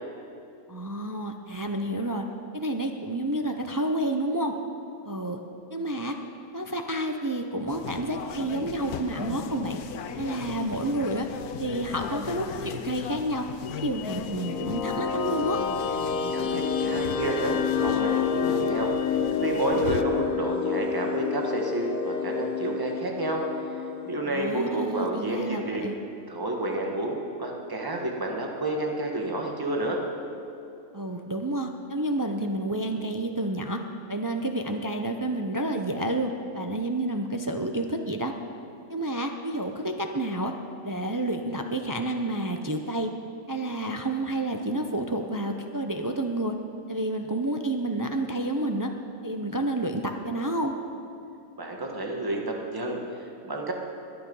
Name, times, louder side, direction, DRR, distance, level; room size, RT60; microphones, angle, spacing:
voice 1, 0.7-2.2 2.5-4.5 5.0-5.4 5.7-6.2 6.5-9.8 10.2-11.3 11.6-13.5 13.8-15.6 24.3-25.9 30.9-33.8 34.1-38.3 38.9-40.5 40.8-43.1 43.5-46.5 46.9-48.9 49.2-50.7, right 1 dB, 30° right, 4 dB, 0.3 m, -29 dB
sound 1, 7.7-20.0, left 8 dB, 90° left, 1.2 m, -38 dB
sound 2, 14.0-24.9, left 6 dB, 70° left, 1.2 m, -29 dB
voice 2, 16.3-18.9 19.4-23.4 24.0-25.9 26.3-30.0 51.6-53.7, right 2 dB, 15° right, 0 dB, 1.5 m, -30 dB
21.5 x 8.8 x 5.5 m, 2.7 s
omnidirectional pair, 1.6 m